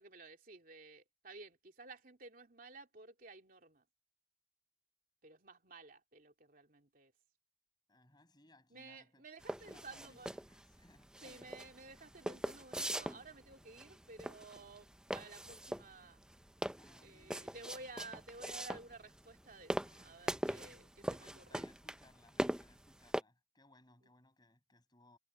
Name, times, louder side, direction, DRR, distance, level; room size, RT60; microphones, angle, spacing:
voice 1, 0.0-3.8 5.2-7.1 8.7-10.4 11.2-16.2 17.0-21.6, right 3 dB, 50° right, 3.0 m, -54 dB
voice 2, 7.9-11.7 16.7-17.6 19.8-20.8 21.2-25.2, left 2 dB, 25° left, 6.3 m, -66 dB
sound 1, 9.4-23.2, right 1 dB, 5° right, 0.6 m, -41 dB
head